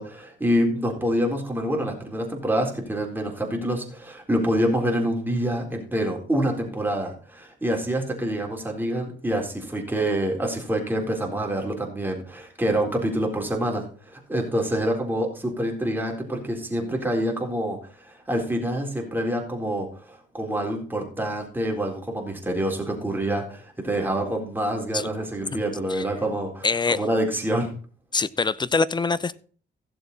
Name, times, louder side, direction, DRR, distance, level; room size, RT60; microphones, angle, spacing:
voice 1, 0.0-13.9 14.1-27.7, right 1 dB, 10° right, 0 dB, 3.9 m, -26 dB
voice 2, 26.6-27.0 28.1-29.4, left 4 dB, 20° left, 19 dB, 0.7 m, -24 dB
16.0 x 7.2 x 4.1 m, 0.42 s
cardioid pair, 90°, 20 cm